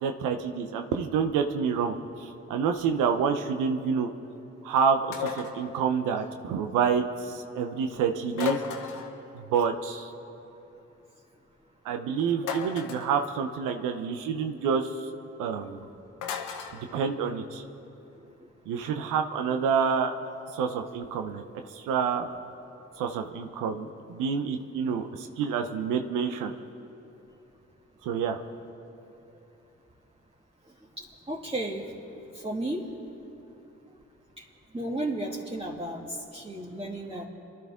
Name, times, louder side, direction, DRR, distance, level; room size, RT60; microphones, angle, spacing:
voice 1, 0.0-4.1 4.6-8.6 9.3-10.1 11.8-15.1 15.4-15.9 16.9-17.6 18.7-20.1 20.5-21.4 21.7-22.3 23.0-26.5 28.0-28.4, right 6 dB, 85° right, 5 dB, 0.7 m, -28 dB
sound 1, 5.1-5.6 8.3-9.2 12.4-13.1 16.2-16.8, left 8 dB, 85° left, 1.1 m, -33 dB
voice 2, 31.0-31.9 32.3-32.8 34.4-34.5 34.7-37.2, right 1 dB, 20° right, -4 dB, 2.1 m, -33 dB
25.0 x 12.0 x 3.6 m, 2.8 s
hypercardioid pair, 40°, 31 cm